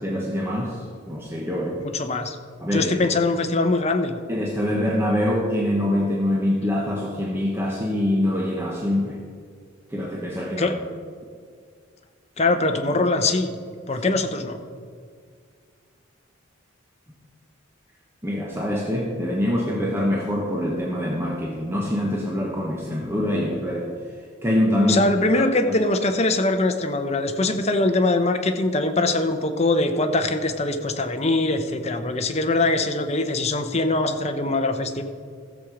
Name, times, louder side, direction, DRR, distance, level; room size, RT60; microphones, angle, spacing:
voice 1, 0.0-1.8 2.6-2.9 4.3-9.2 9.9-10.7 18.2-23.9 24.2-25.8, left 1 dB, 10° right, -2 dB, 1.0 m, -24 dB
voice 2, 1.8-2.4 2.7-4.2 10.6-10.7 12.4-13.5 13.9-14.6 24.9-35.0, left 2 dB, 30° left, 7 dB, 0.8 m, -22 dB
14.0 x 7.3 x 4.9 m, 2.1 s
head